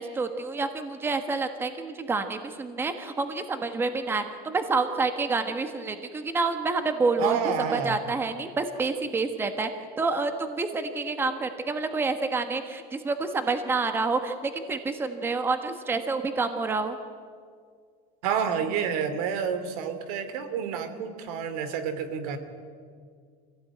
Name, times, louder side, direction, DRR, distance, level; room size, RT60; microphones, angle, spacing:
voice 1, 0.0-7.4 7.7-9.7 10.0-17.0, right 3 dB, 10° right, 8 dB, 1.2 m, -28 dB
voice 2, 7.2-8.0 18.2-22.4, right 7 dB, 70° right, 10 dB, 2.7 m, -29 dB
25.0 x 16.5 x 9.2 m, 2.1 s
cardioid pair, 175°, 20 cm